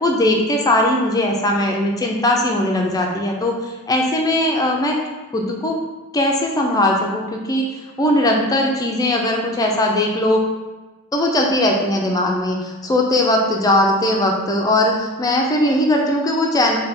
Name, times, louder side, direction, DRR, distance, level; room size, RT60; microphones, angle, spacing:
voice 1, 0.0-3.5 3.9-4.9 5.3-5.7 6.1-7.6 8.0-10.4 11.1-16.8, left 1 dB, 15° left, 0 dB, 0.3 m, -19 dB
3.3 x 2.2 x 4.1 m, 1.2 s
head